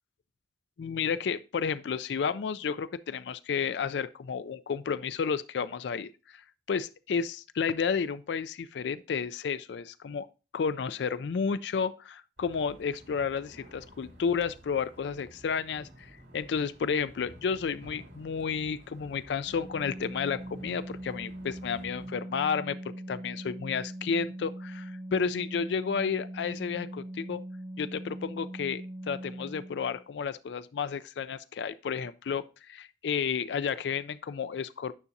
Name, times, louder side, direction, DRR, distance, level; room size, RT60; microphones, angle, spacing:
voice 1, 0.8-10.3 10.5-22.8 23.1-27.4 27.8-34.9, left 6 dB, 85° left, 0.4 m, -32 dB
sound 1, 12.4-22.1, equal, 85° right, 2.5 m, -52 dB
Organ, 19.5-30.0, right 1 dB, 30° right, 0.4 m, -41 dB
9.6 x 5.8 x 2.7 m
head